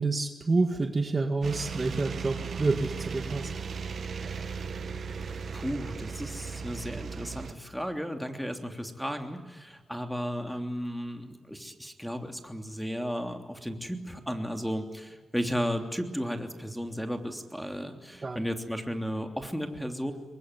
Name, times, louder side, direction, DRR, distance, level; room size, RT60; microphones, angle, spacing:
voice 1, 0.0-3.5 18.2-18.4, right 3 dB, 40° right, 6 dB, 1.9 m, -28 dB
sound 1, 1.4-7.5, right 5 dB, 65° right, 1.9 m, -37 dB
voice 2, 5.5-20.1, equal, ahead, 5 dB, 3.2 m, -34 dB
23.0 x 20.5 x 9.8 m, 1.4 s
cardioid pair, 60°, 0 cm